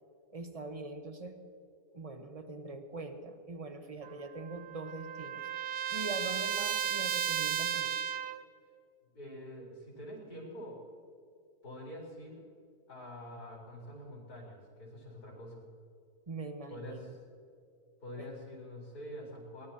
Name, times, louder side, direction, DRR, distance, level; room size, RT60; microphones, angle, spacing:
voice 1, 0.3-1.4 1.9-7.9 16.3-17.2 18.2-18.3, right 3 dB, 25° right, 6 dB, 1.2 m, -43 dB
Trumpet, 4.0-8.4, right 9 dB, 70° right, 1.1 m, -34 dB
voice 2, 9.1-10.8 11.6-12.4 12.9-15.7 16.7-17.1 18.0-19.7, equal, 70° left, -3 dB, 4.7 m, -46 dB
23.5 x 19.5 x 2.9 m, 2.4 s
omnidirectional pair, 1.7 m